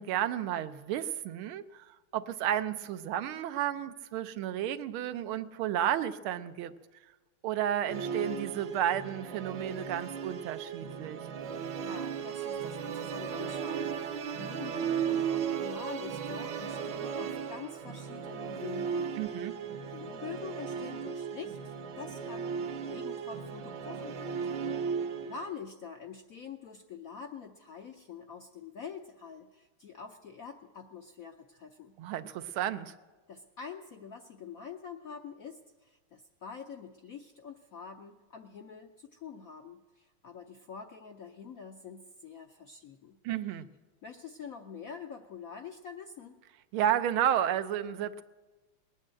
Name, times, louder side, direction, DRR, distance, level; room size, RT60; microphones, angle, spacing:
voice 1, 0.0-6.7 7.4-11.2 19.2-19.5 32.0-32.9 43.2-43.7 46.7-48.2, right 10 dB, 85° right, 11 dB, 1.6 m, -32 dB
Musical instrument, 7.9-25.5, right 7 dB, 65° right, 1.5 m, -36 dB
voice 2, 11.8-19.5 19.8-24.4 25.1-31.9 33.3-43.2 44.0-46.4, left 6 dB, 70° left, 4 dB, 0.8 m, -46 dB
20.0 x 8.9 x 7.7 m, 1.2 s
omnidirectional pair, 2.3 m